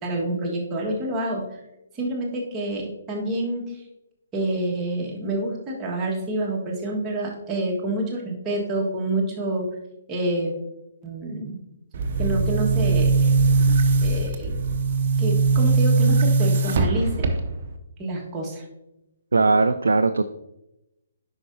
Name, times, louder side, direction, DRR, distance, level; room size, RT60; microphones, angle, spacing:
voice 1, 0.0-1.4 1.9-3.8 4.3-9.6 10.1-10.5 11.0-11.5 12.2-13.3 14.0-14.5 15.2-17.3 18.0-18.6, right 1 dB, 20° right, -2 dB, 1.6 m, -27 dB
Boom, 11.9-17.7, right 4 dB, 45° right, 0.9 m, -20 dB
voice 2, 19.3-20.2, right 3 dB, 75° right, 9 dB, 0.3 m, -19 dB
9.6 x 5.6 x 2.7 m, 0.90 s
figure-of-eight pair, 135°, 0 cm